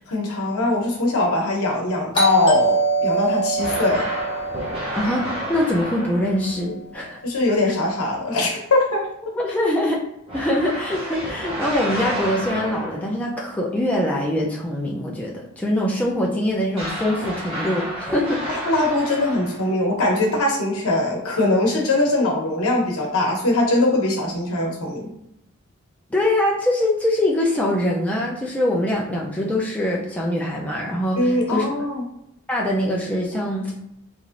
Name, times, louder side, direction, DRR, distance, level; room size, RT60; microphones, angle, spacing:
voice 1, 0.1-4.1 7.2-9.1 18.7-25.1 31.2-32.0, left 2 dB, 85° left, 0 dB, 0.8 m, -21 dB
Doorbell, 2.1-6.7, right 1 dB, 20° left, 0.8 m, -24 dB
sound 1, 3.6-6.5 10.3-13.2 16.7-19.8, equal, 25° right, 0.7 m, -30 dB
voice 2, 5.0-7.2 9.4-10.0 10.3-18.4 26.1-31.7 32.5-33.9, left 1 dB, 5° left, -3 dB, 0.4 m, -23 dB
3.0 x 2.5 x 2.5 m, 0.81 s
head